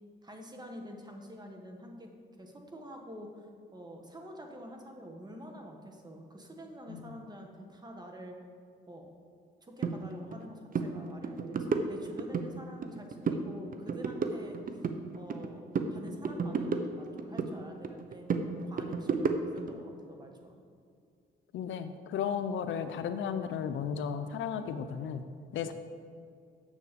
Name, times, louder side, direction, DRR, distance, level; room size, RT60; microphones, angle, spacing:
voice 1, 0.2-2.1 2.4-3.5 3.7-8.3 8.9-9.1 9.6-14.9 15.1-20.6, equal, 20° right, 2 dB, 1.5 m, -47 dB
voice 2, 6.9-7.2 21.5-25.2 25.5-25.7, left 7 dB, 75° left, 9 dB, 0.6 m, -34 dB
sound 1, 9.8-10.0 10.3-10.5 10.7-10.9 11.2-12.5 12.8-13.5 13.7-15.5 15.7-17.5 17.8-19.7, right 5 dB, 45° right, 0.8 m, -32 dB
7.3 x 7.0 x 6.8 m, 2.3 s
cardioid pair, 90°, 20 cm